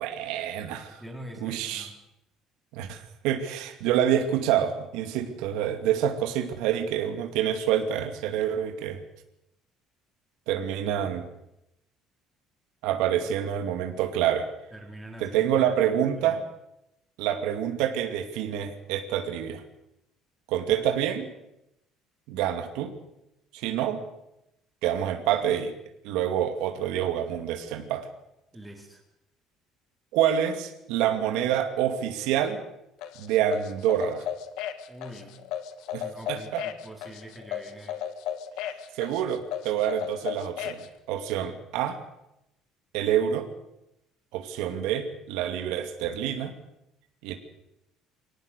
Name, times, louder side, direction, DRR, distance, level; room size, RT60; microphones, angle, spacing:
voice 1, 0.0-1.0 1.4-1.9 2.7-9.0 10.5-11.3 12.8-14.5 15.2-16.4 17.2-19.6 20.5-21.3 22.3-22.9 23.5-24.0 24.8-25.7 26.0-28.1 30.1-32.6 33.2-34.3 35.9-36.6 38.9-42.0 42.9-43.5 44.3-46.5 47.2-47.3, right 10 dB, 90° right, 6 dB, 2.4 m, -27 dB
voice 2, 1.0-1.9 13.1-13.3 14.7-16.4 28.5-29.0 34.9-35.4 36.0-38.0, right 1 dB, 5° right, 0 dB, 5.0 m, -44 dB
sound 1, 33.0-40.9, left 10 dB, 75° left, 1.8 m, -35 dB
24.0 x 18.5 x 6.8 m, 0.84 s
cardioid pair, 145°, 0 cm